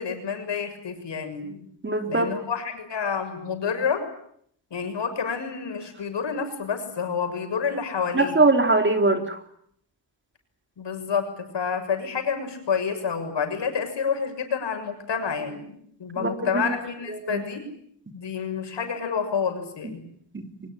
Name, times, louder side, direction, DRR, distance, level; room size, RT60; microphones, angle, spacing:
voice 1, 0.0-1.7 2.1-4.0 4.7-8.4 10.8-17.7 18.1-20.0, left 6 dB, 70° left, 6 dB, 6.9 m, -29 dB
voice 2, 1.8-2.3 8.1-9.4 16.2-16.5 17.3-17.4 20.3-20.4, right 3 dB, 25° right, 6 dB, 3.5 m, -21 dB
24.0 x 21.0 x 10.0 m, 0.68 s
wide cardioid pair, 110°, 44 cm